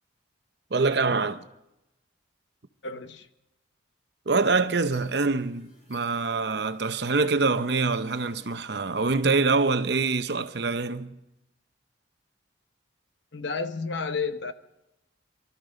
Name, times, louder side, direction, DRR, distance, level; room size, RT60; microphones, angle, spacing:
voice 1, 0.7-1.4 4.3-11.2, right 4 dB, 55° right, 0.7 m, -25 dB
voice 2, 2.8-3.3 13.3-14.5, left 4 dB, 65° left, 1.0 m, -31 dB
sound 1, 4.6-8.6, left 1 dB, 45° left, 6.8 m, -57 dB
25.0 x 12.5 x 3.9 m
head